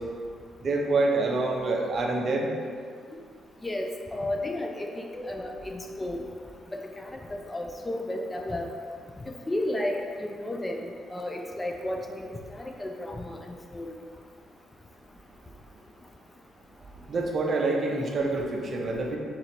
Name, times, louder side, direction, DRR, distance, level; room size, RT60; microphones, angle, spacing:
voice 1, 0.6-2.5 17.1-19.2, right 3 dB, 45° right, 0 dB, 0.6 m, -26 dB
voice 2, 3.6-6.2 7.0-8.7 9.5-10.8 11.1-13.4 13.7-13.9, left 1 dB, 15° left, 2 dB, 0.4 m, -33 dB
3.7 x 2.9 x 4.4 m, 2.1 s
cardioid pair, 90°, 0 cm